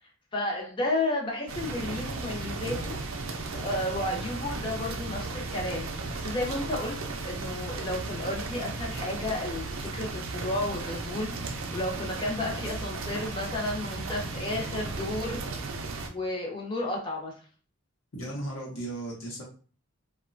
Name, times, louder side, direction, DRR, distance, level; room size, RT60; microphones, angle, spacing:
voice 1, 0.3-3.0 3.5-7.0 7.2-15.5 16.1-17.3, left 1 dB, 25° left, 0 dB, 0.6 m, -32 dB
sound 1, 1.5-16.1, right 3 dB, 65° right, 0.4 m, -35 dB
voice 2, 18.1-19.4, right 1 dB, 65° left, -3 dB, 0.8 m, -39 dB
2.9 x 2.2 x 2.5 m, 0.39 s
head